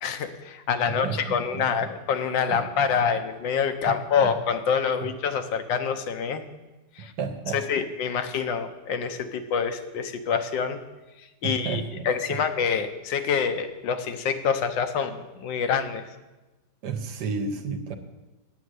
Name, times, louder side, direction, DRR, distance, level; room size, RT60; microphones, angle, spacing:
voice 1, 0.0-6.4 7.0-7.1 7.5-10.8 11.4-16.0, left 6 dB, 85° left, 8 dB, 1.5 m, -26 dB
voice 2, 0.9-1.9 2.5-2.6 3.9-4.0 4.2-4.3 7.0-7.9 11.4-12.1 16.8-18.0, right 5 dB, 70° right, 7 dB, 1.4 m, -32 dB
9.0 x 6.2 x 8.1 m, 1.1 s
omnidirectional pair, 1.9 m